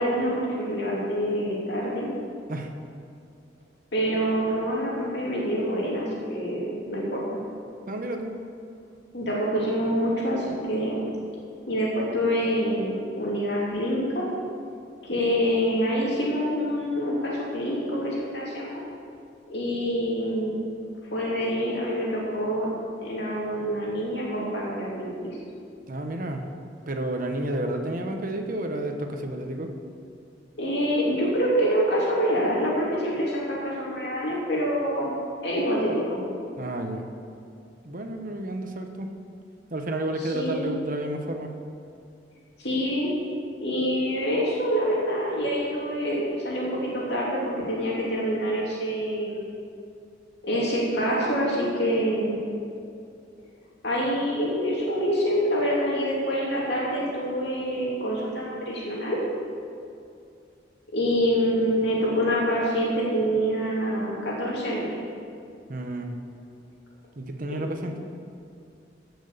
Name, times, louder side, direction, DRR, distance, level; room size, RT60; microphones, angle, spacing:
voice 1, 0.0-2.1 3.9-7.4 9.1-11.1 11.6-14.3 15.0-18.8 19.5-20.6 21.1-22.7 23.0-25.4 30.6-35.1 35.4-36.2 40.2-40.7 42.6-43.1 43.6-49.5 50.4-52.4 53.8-59.2 60.9-65.0 67.5-67.6, equal, 65° left, -5 dB, 2.8 m, -26 dB
voice 2, 7.9-8.3 25.9-26.4 26.9-29.7 36.6-37.0 37.8-39.1 39.7-41.5 65.7-66.2 67.2-67.9, right 1 dB, 50° right, 4 dB, 1.1 m, -31 dB
15.5 x 6.2 x 6.8 m, 2.4 s
head